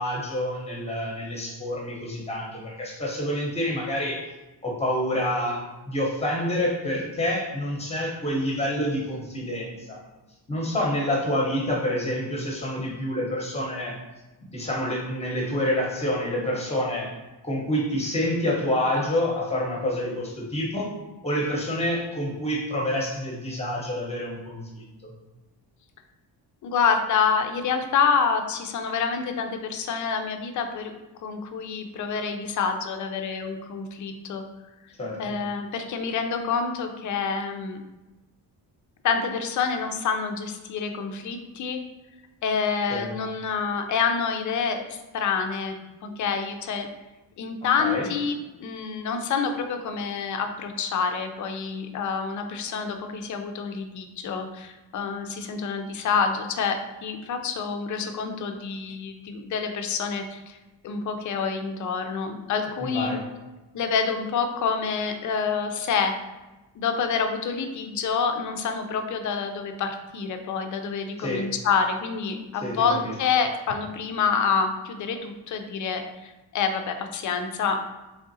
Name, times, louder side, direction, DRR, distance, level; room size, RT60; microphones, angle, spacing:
voice 1, 0.0-4.3 4.6-10.0 10.5-14.0 14.5-17.1 17.4-20.9 21.2-25.1 35.0-35.2 42.9-43.1 47.8-48.1 62.8-63.2 71.2-71.5 72.6-73.1, left 1 dB, 15° left, -2 dB, 0.8 m, -28 dB
voice 2, 26.6-30.9 31.2-34.4 35.2-37.8 39.0-41.8 42.4-45.8 46.0-46.9 47.4-60.6 60.8-63.2 63.7-66.1 66.8-77.8, left 5 dB, 45° left, 5 dB, 0.4 m, -27 dB
3.6 x 3.4 x 2.6 m, 1.1 s
cardioid pair, 150°, 43 cm